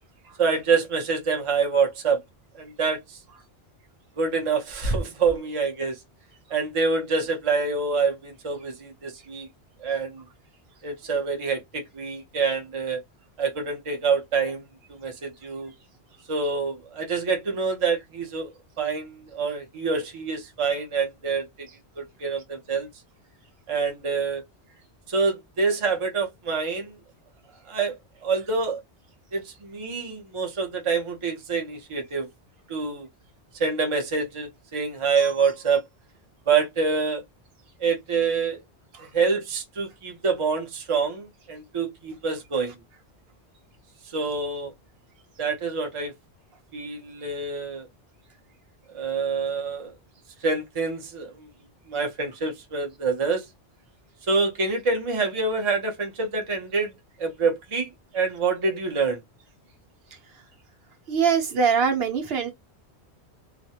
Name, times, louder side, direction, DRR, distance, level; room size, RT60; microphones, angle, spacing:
voice 1, 0.4-2.2 2.5-3.2 4.2-6.0 6.5-9.5 9.8-10.2 10.8-13.0 13.4-14.6 14.9-15.7 16.3-18.5 18.8-21.7 22.0-22.9 23.7-24.4 25.1-27.0 27.7-28.8 29.3-32.3 32.7-33.1 33.6-35.8 36.5-37.2 37.8-38.6 39.0-42.7 44.1-44.7 45.4-46.1 46.7-47.9 48.9-49.9 50.4-51.5 51.9-53.5 54.3-57.9 58.1-59.2, right 4 dB, 35° right, 0.6 m, -26 dB
voice 2, 61.1-62.5, right 6 dB, 65° right, 0.9 m, -23 dB
2.4 x 2.1 x 2.7 m
omnidirectional pair, 1.1 m